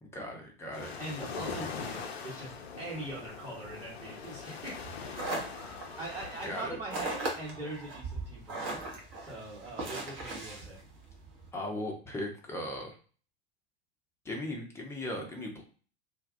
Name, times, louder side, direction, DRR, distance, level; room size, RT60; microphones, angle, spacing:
voice 1, 0.0-0.9 6.4-6.8 11.5-12.9 14.2-15.6, left 1 dB, 10° left, 1 dB, 0.5 m, -38 dB
sound 1, 0.7-6.6, left 5 dB, 70° left, 0.5 m, -42 dB
voice 2, 1.0-5.2 6.0-8.8 9.2-10.8, right 2 dB, 10° right, -6 dB, 1.0 m, -41 dB
sound 2, 4.7-11.5, right 2 dB, 35° right, 0.8 m, -39 dB
2.2 x 2.2 x 2.5 m, 0.40 s
figure-of-eight pair, 85°, 33 cm